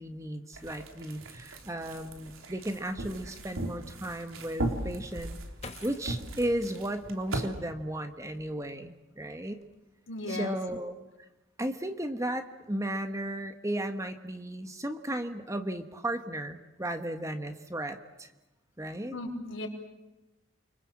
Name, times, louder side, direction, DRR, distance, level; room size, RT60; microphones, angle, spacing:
voice 1, 0.0-5.4 5.8-9.6 10.3-10.9 11.6-18.3 18.8-19.1, right 1 dB, 15° right, 7 dB, 1.4 m, -35 dB
sound 1, 0.5-7.5, right 1 dB, 85° right, 3.8 m, -38 dB
sound 2, 5.6-7.7 8.2-9.0 9.3-9.7, left 3 dB, 30° left, 2.0 m, -50 dB
voice 2, 10.1-10.6 19.1-19.7, left 1 dB, 70° left, 0 dB, 5.2 m, -36 dB
29.5 x 25.0 x 7.6 m, 1.0 s
head